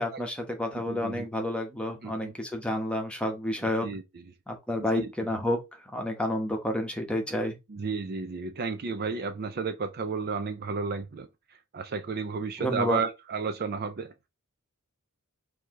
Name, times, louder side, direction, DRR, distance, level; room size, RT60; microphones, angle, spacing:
voice 1, 0.0-3.9 4.5-5.6 5.9-7.6 12.6-13.0, left 1 dB, 5° left, 0.9 m, -30 dB
voice 2, 0.9-1.3 2.0-2.3 3.6-4.0 4.9-5.1 7.7-11.3 11.7-14.1, right 5 dB, 45° right, 0.5 m, -32 dB
4.7 x 2.8 x 3.6 m
head